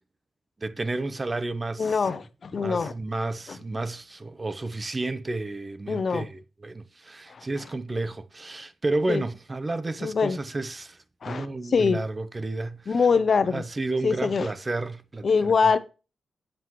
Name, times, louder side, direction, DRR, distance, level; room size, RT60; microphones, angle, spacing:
voice 1, 0.6-2.0 2.6-11.0 11.2-13.0 13.5-15.7, right 2 dB, 30° right, 0.8 m, -31 dB
voice 2, 1.8-2.9 3.5-3.6 5.9-6.2 7.3-7.4 9.1-9.2 10.0-10.4 11.2-12.0 12.9-13.6 14.0-14.5 15.2-15.8, left 5 dB, 55° left, 0.8 m, -23 dB
7.7 x 7.5 x 3.1 m
cardioid pair, 55°, 0 cm